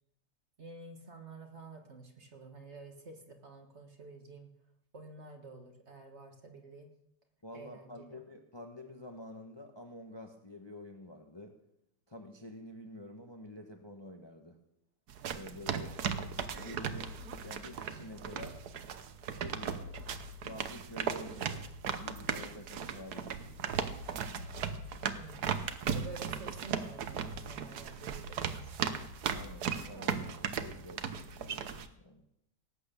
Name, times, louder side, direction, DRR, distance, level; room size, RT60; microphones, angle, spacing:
voice 1, 0.6-4.5 4.9-6.9 7.5-8.2 25.1-25.5 25.9-29.0, right 3 dB, 40° right, 4 dB, 1.7 m, -50 dB
voice 2, 7.4-11.5 12.1-14.6 15.3-17.1 17.4-18.6 19.3-19.9 20.4-21.7 22.0-23.9 29.3-32.2, left 1 dB, 15° left, 4 dB, 1.0 m, -49 dB
sound 1, 15.1-31.9, right 7 dB, 65° right, 1.4 m, -37 dB
18.0 x 8.3 x 6.9 m, 0.77 s
omnidirectional pair, 1.9 m